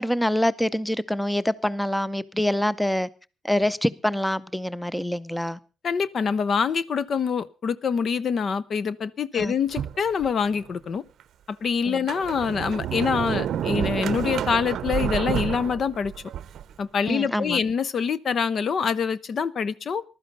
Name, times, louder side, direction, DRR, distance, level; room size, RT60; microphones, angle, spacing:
voice 1, 0.0-3.1 3.4-5.6 9.3-9.5 11.9-12.0 17.1-17.6, left 1 dB, 5° left, 0.6 m, -25 dB
voice 2, 5.8-11.0 11.5-16.1 16.8-20.0, left 6 dB, 50° left, 0.6 m, -25 dB
Sliding door, 9.7-10.6 11.2-11.3 11.9-16.7, right 10 dB, 70° right, 0.6 m, -29 dB
15.0 x 12.0 x 5.3 m
cardioid pair, 90°, 0 cm